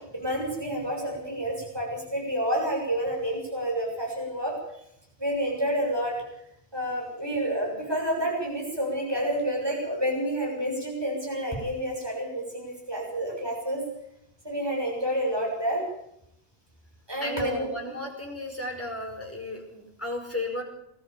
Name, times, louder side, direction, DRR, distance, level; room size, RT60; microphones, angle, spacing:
voice 1, 0.0-4.5 5.2-6.1 6.7-13.8 14.4-15.8 17.1-17.7, equal, 20° right, -1 dB, 7.1 m, -29 dB
voice 2, 17.2-20.6, left 1 dB, 10° left, 0 dB, 5.3 m, -34 dB
21.0 x 13.5 x 9.0 m, 0.79 s
omnidirectional pair, 1.1 m